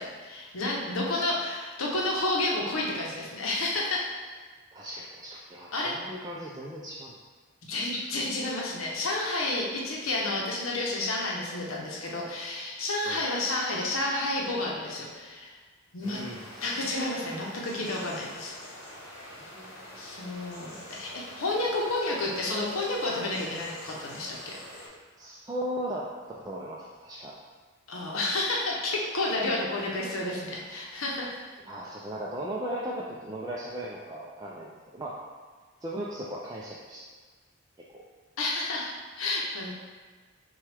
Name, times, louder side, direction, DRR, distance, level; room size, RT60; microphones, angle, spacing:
voice 1, 0.0-4.1 5.7-5.9 7.7-15.5 15.9-16.2 16.6-18.5 20.0-24.6 27.9-31.4 38.4-39.7, left 2 dB, 80° left, -2 dB, 0.8 m, -30 dB
voice 2, 4.7-7.2 13.0-13.2 16.0-16.5 19.4-20.0 25.2-26.1 26.4-27.3 31.7-35.2 35.8-37.0 37.9-38.0, right 1 dB, 20° right, -5 dB, 0.3 m, -37 dB
sound 1, 16.0-24.9, left 1 dB, 55° left, 1.2 m, -45 dB
6.0 x 2.3 x 3.3 m, 1.5 s
head